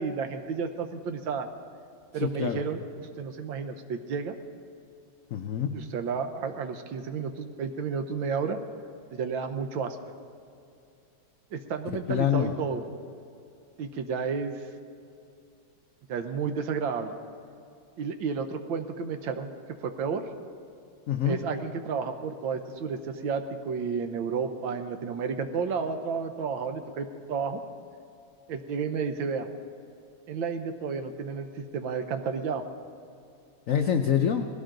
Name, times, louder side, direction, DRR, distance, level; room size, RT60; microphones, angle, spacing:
voice 1, 0.0-1.5 2.1-4.4 5.7-8.6 9.1-10.0 11.5-12.8 13.8-14.7 16.1-17.1 18.0-19.5 19.8-20.3 21.2-27.6 28.5-29.5 30.3-32.6, right 5 dB, 70° right, 7 dB, 1.6 m, -31 dB
voice 2, 2.2-2.6 5.3-5.7 12.1-12.5 21.1-21.4 33.7-34.5, left 9 dB, 80° left, 5 dB, 0.7 m, -25 dB
19.5 x 16.5 x 3.9 m, 2.5 s
omnidirectional pair, 2.3 m